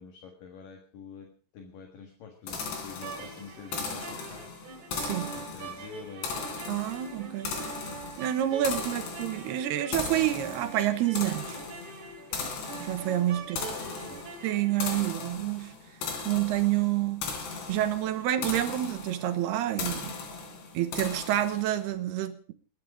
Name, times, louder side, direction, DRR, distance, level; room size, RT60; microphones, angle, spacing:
voice 1, 0.0-4.5 5.2-6.5 8.7-8.9 13.3-14.3, left 6 dB, 60° left, 3.1 m, -47 dB
sound 1, 2.5-21.8, left 4 dB, 80° left, 5.5 m, -38 dB
sound 2, 2.9-15.2, right 5 dB, 50° right, 3.2 m, -44 dB
voice 2, 6.7-7.6 8.2-11.6 12.8-13.6 14.4-15.7 16.3-17.3 17.7-20.2 20.7-22.5, right 13 dB, 80° right, 3.0 m, -28 dB
21.0 x 10.5 x 5.0 m
omnidirectional pair, 4.8 m